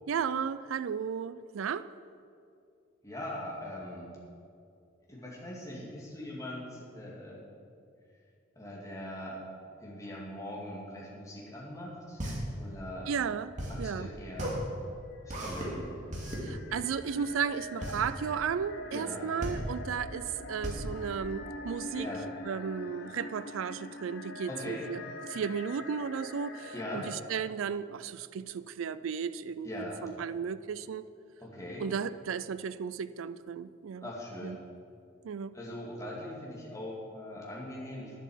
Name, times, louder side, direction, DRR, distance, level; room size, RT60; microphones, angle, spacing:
voice 1, 0.1-1.9 13.1-14.1 16.4-22.1 22.5-25.0 25.3-31.1 31.8-34.0 34.4-34.6 35.2-35.6, right 7 dB, 80° right, 14 dB, 0.4 m, -34 dB
voice 2, 3.0-4.2 5.1-7.5 8.6-9.4 9.8-12.2 12.6-13.1 13.7-14.6 15.3-15.8 18.9-19.3 22.0-22.2 24.5-24.9 26.7-27.1 29.6-30.0 31.4-31.9 34.0-34.6 35.5-38.2, left 1 dB, 15° left, -5 dB, 2.4 m, -41 dB
sound 1, 11.9-22.1, equal, 40° right, 2.6 m, -37 dB
sound 2, 14.8-27.1, left 2 dB, 55° left, 1.0 m, -44 dB
10.5 x 8.2 x 7.3 m, 2.4 s
head